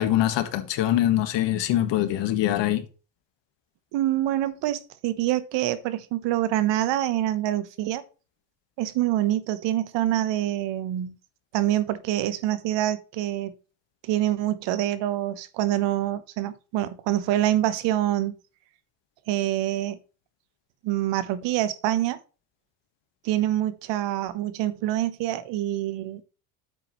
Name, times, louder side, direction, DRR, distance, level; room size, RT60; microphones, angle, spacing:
voice 1, 0.0-2.8, left 13 dB, 60° left, 1.6 m, -23 dB
voice 2, 3.9-8.0 8.8-11.2 11.5-13.5 14.0-18.4 19.3-20.0 20.8-22.2 23.2-26.2, right 13 dB, 60° right, 1.0 m, -26 dB
9.1 x 7.6 x 3.1 m
supercardioid pair, 100°, 48 cm